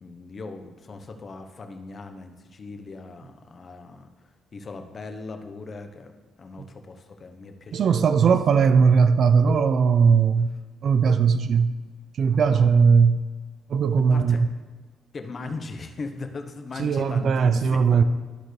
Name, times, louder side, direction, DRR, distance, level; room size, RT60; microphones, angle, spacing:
voice 1, 0.0-4.1 4.5-6.1 6.4-8.6 12.5-12.8 14.1-14.5 15.1-18.0, left 3 dB, 40° left, 6 dB, 0.8 m, -39 dB
voice 2, 7.7-10.5 10.8-11.7 12.2-13.2 13.7-14.5 16.8-18.0, right 6 dB, 60° right, 12 dB, 0.4 m, -19 dB
13.0 x 4.4 x 3.2 m, 1.3 s
cardioid pair, 90°, 0 cm